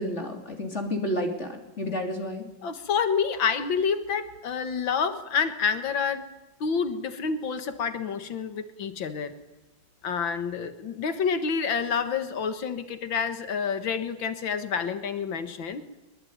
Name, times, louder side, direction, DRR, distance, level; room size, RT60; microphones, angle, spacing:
voice 1, 0.0-1.5 1.8-2.4, left 1 dB, 35° left, 4 dB, 3.3 m, -30 dB
voice 2, 2.6-6.2 6.6-9.3 10.0-15.8, left 6 dB, 85° left, 10 dB, 2.3 m, -28 dB
22.5 x 22.0 x 9.5 m, 0.99 s
omnidirectional pair, 2.0 m